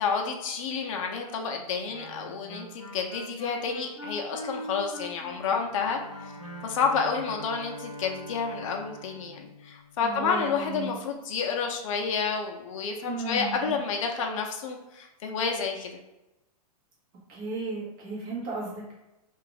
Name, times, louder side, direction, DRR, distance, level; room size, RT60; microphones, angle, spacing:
voice 1, 0.0-6.0 6.6-15.9, left 5 dB, 55° left, 2 dB, 0.5 m, -30 dB
Wind instrument woodwind instrument, 1.9-7.6, equal, ahead, 0.7 m, -42 dB
Bowed string instrument, 5.6-10.4, equal, 40° left, 0.9 m, -44 dB
voice 2, 10.0-11.0 13.0-13.8 17.3-19.0, right 3 dB, 30° right, -6 dB, 1.2 m, -35 dB
2.7 x 2.4 x 3.9 m, 0.96 s
supercardioid pair, 175°, 20 cm